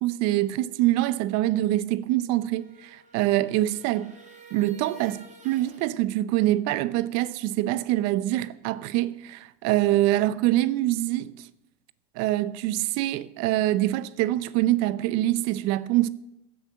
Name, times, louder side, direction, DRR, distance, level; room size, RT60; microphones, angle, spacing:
voice 1, 0.0-4.1 4.5-11.5 12.2-16.1, right 15 dB, 60° right, 0.8 m, -25 dB
sound 1, 2.3-5.9, right 4 dB, 25° right, 3.6 m, -51 dB
15.5 x 8.7 x 6.8 m
hypercardioid pair, 95°, 30 cm